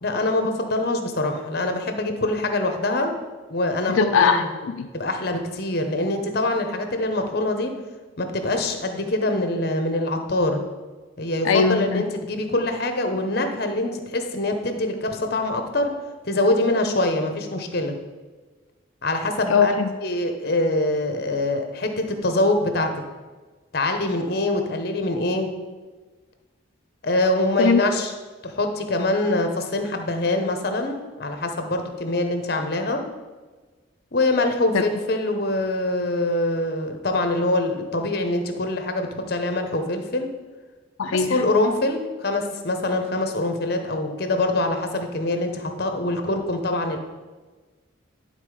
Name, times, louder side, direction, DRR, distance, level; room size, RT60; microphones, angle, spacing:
voice 1, 0.0-3.1 3.5-4.0 4.2-4.5 4.9-7.7 8.2-10.6 11.2-15.9 16.2-17.9 19.0-19.7 20.0-22.9 23.7-25.5 27.0-28.1 28.4-33.0 34.1-40.3 41.1-47.0, left 2 dB, 50° left, 5 dB, 0.9 m, -24 dB
voice 2, 3.9-4.9 11.4-12.0 19.5-19.9 27.6-27.8 34.7-34.8 41.0-41.5, left 5 dB, 90° left, 6 dB, 0.4 m, -20 dB
11.0 x 4.0 x 4.9 m, 1.3 s
head